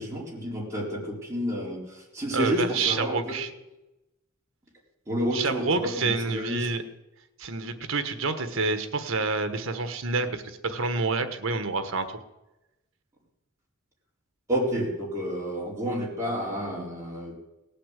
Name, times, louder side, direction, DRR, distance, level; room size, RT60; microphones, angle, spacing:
voice 1, 0.0-3.3 5.1-6.7 14.5-17.4, equal, 15° right, -4 dB, 4.1 m, -30 dB
voice 2, 2.3-3.5 5.3-6.8 7.4-12.1, right 3 dB, 70° right, 9 dB, 1.4 m, -28 dB
18.0 x 8.6 x 8.2 m, 0.99 s
head